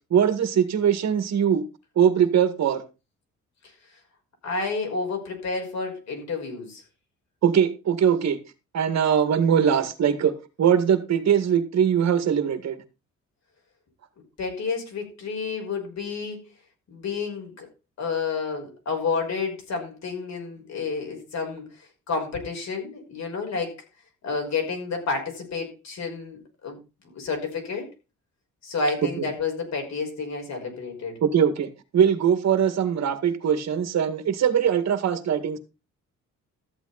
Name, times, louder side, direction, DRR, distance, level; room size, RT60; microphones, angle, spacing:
voice 1, 0.1-1.6 2.0-2.8 7.4-8.4 8.7-10.3 10.6-12.8 29.0-29.3 31.2-31.7 31.9-35.6, right 8 dB, 60° right, 2.1 m, -21 dB
voice 2, 4.4-6.8 14.4-16.4 16.9-17.7 18.0-21.6 22.1-23.8 24.2-26.8 27.1-27.9 28.6-31.2, left 4 dB, 65° left, 5.6 m, -30 dB
13.5 x 8.3 x 4.2 m
cardioid pair, 90°, 30 cm